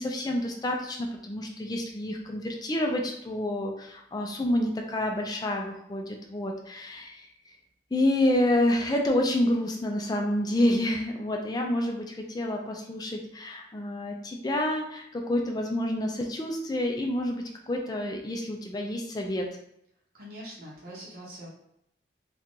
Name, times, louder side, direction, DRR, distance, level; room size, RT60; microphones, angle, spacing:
voice 1, 0.0-7.6 7.9-19.5, left 1 dB, 20° left, 2 dB, 0.4 m, -28 dB
voice 2, 20.1-21.5, equal, 55° right, -5 dB, 0.8 m, -43 dB
2.8 x 2.5 x 3.6 m, 0.75 s
head